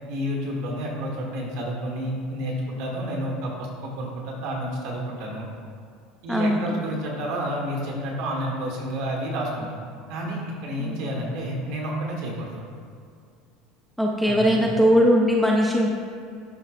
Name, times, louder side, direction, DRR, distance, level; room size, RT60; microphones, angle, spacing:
voice 1, 0.1-5.5 6.2-9.8 10.1-12.6 14.2-14.7, equal, 60° right, -1 dB, 1.3 m, -30 dB
voice 2, 6.3-6.8 10.8-11.0 14.0-15.9, equal, ahead, -3 dB, 0.4 m, -20 dB
11.0 x 3.9 x 2.4 m, 2.3 s
cardioid pair, 170°, 0 cm